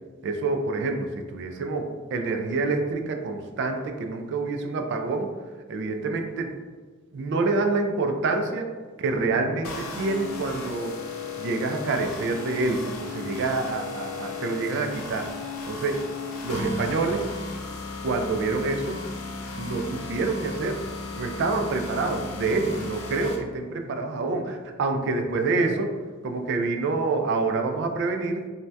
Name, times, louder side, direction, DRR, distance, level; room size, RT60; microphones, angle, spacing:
voice 1, 0.2-5.3 5.7-6.5 7.1-8.7 9.0-11.0 11.4-15.3 15.7-16.0 16.4-17.2 18.0-19.0 19.6-20.8 21.2-25.9 26.2-28.4, right 3 dB, 55° right, 5 dB, 0.3 m, -27 dB
sound 1, 9.6-23.4, left 3 dB, 85° left, 0.5 m, -35 dB
2.6 x 2.2 x 3.2 m, 1.4 s
head